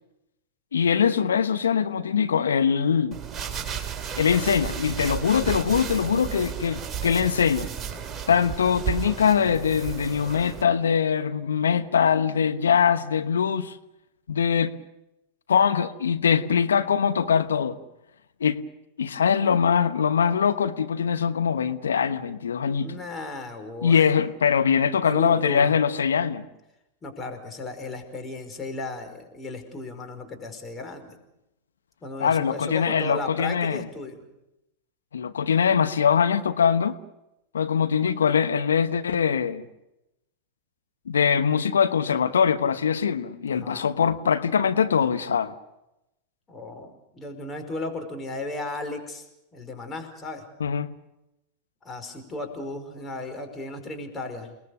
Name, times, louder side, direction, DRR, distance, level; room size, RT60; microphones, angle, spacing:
voice 1, 0.7-3.2 4.2-7.7 8.3-13.8 14.3-14.8 15.5-17.8 18.4-18.6 19.0-23.0 23.8-26.4 32.2-33.9 35.1-36.9 37.5-39.7 41.1-45.5 50.6-50.9, left 7 dB, 75° left, 1.1 m, -22 dB
sound 1, 3.1-10.6, right 8 dB, 25° right, 3.8 m, -33 dB
voice 2, 22.7-24.1 25.0-25.7 27.0-31.2 32.0-34.2 43.5-43.9 46.5-49.3 49.5-50.4 51.8-54.5, left 2 dB, 20° left, 5.2 m, -35 dB
29.5 x 20.0 x 6.7 m
figure-of-eight pair, 95°, 0 cm